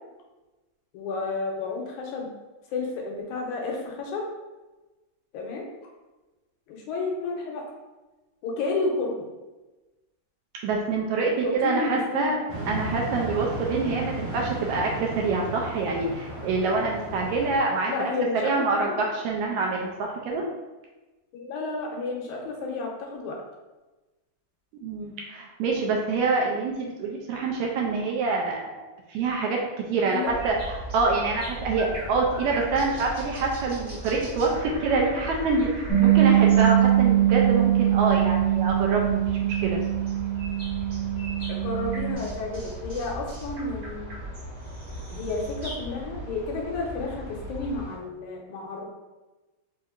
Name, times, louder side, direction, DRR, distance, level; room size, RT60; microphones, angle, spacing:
voice 1, 0.9-2.3 2.7-4.2 5.3-5.7 6.7-7.6 8.4-9.3 11.4-12.4 17.9-19.0 21.3-23.4 29.9-30.3 41.5-44.1 45.1-48.9, left 3 dB, 80° left, 0 dB, 2.0 m, -31 dB
voice 2, 10.6-12.4 12.7-18.1 18.4-20.4 24.8-30.5 30.9-39.8, right 3 dB, 80° right, 0 dB, 1.8 m, -26 dB
sound 1, 12.5-17.6, right 1 dB, 65° right, 1.7 m, -34 dB
sound 2, 30.3-48.0, right 1 dB, 40° right, 1.2 m, -38 dB
Bass guitar, 35.9-42.1, right 12 dB, 65° left, 1.0 m, -22 dB
5.1 x 2.7 x 2.4 m, 1.1 s
omnidirectional pair, 3.5 m